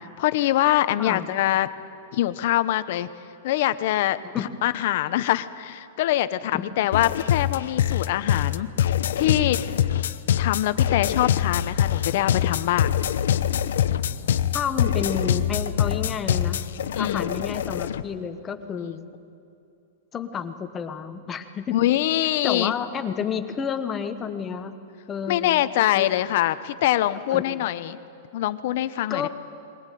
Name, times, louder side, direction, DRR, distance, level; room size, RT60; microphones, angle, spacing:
voice 1, 0.2-1.7 2.1-3.1 3.4-8.7 9.2-9.6 10.4-12.9 16.9-17.3 21.7-22.7 25.3-28.0 28.3-29.3, left 14 dB, 55° left, 13 dB, 0.9 m, -24 dB
sound 1, 6.9-18.0, left 10 dB, 85° left, 0.8 m, -24 dB
voice 2, 14.5-16.6 16.9-19.0 20.1-21.8 22.4-24.8 25.1-25.6 25.9-26.1 27.0-27.4 29.1-29.3, left 7 dB, 20° left, 9 dB, 1.1 m, -30 dB
21.5 x 18.0 x 9.2 m, 2.7 s
supercardioid pair, 155°, 0 cm